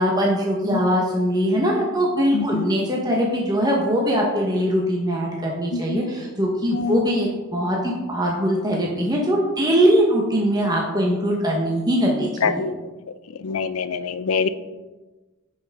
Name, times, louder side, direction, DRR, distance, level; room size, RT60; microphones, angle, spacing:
voice 1, 0.0-12.6, equal, 20° right, -2 dB, 1.0 m, -21 dB
voice 2, 2.3-2.6 5.7-6.0 6.7-7.0 12.4-12.7 13.4-14.5, left 5 dB, 80° left, 12 dB, 0.5 m, -24 dB
10.5 x 5.8 x 3.6 m, 1.2 s
head